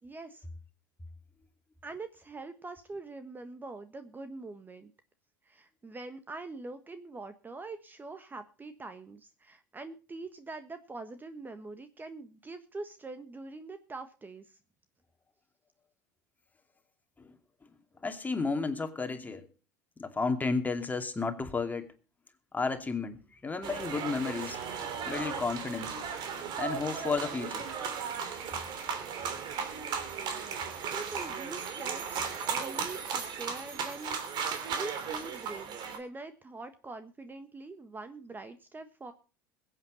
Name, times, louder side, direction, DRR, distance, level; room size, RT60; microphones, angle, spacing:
voice 1, 0.0-0.4 1.8-4.9 5.4-14.6 30.9-39.1, right 3 dB, 20° right, 1.4 m, -44 dB
voice 2, 18.0-19.5 20.0-21.9 22.5-24.6 25.1-25.9 26.6-27.7, left 4 dB, 15° left, 2.5 m, -32 dB
sound 1, 23.6-36.0, right 6 dB, 50° right, 3.0 m, -36 dB
22.0 x 8.6 x 4.2 m
hypercardioid pair, 75°, 10 cm